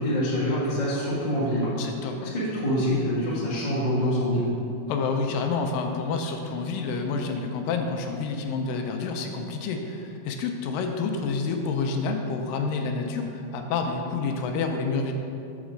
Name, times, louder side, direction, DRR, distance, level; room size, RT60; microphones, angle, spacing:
voice 1, 0.0-1.7 2.2-4.5, equal, 45° left, -8 dB, 0.5 m, -25 dB
voice 2, 1.8-2.3 4.9-15.1, left 4 dB, 80° left, 4 dB, 2.2 m, -28 dB
7.0 x 4.0 x 6.3 m, 2.6 s
omnidirectional pair, 4.0 m